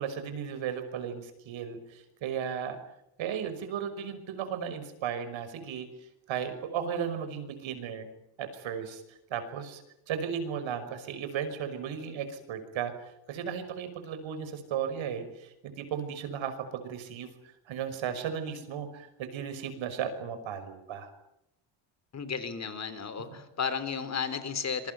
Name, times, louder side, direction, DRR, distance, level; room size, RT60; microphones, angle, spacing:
voice 1, 0.0-2.8 3.2-5.9 6.3-8.1 8.4-9.0 9.3-9.8 10.1-12.9 13.3-17.3 17.7-21.1 23.3-23.4, right 8 dB, 70° right, 10 dB, 5.8 m, -35 dB
voice 2, 22.1-24.9, left 6 dB, 35° left, 12 dB, 3.4 m, -33 dB
27.0 x 23.0 x 9.3 m, 0.82 s
cardioid pair, 160°, 48 cm